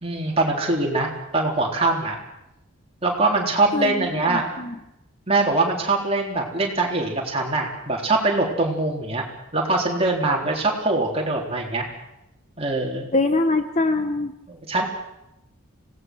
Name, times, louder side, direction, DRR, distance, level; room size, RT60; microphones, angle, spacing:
voice 1, 0.0-2.2 3.0-4.5 5.3-9.3 9.5-11.9 12.6-13.1 14.5-14.8, right 2 dB, 25° right, -1 dB, 3.8 m, -23 dB
voice 2, 3.7-4.8 13.1-14.3, left 2 dB, 30° left, 8 dB, 1.0 m, -23 dB
26.0 x 18.5 x 6.3 m, 0.88 s
head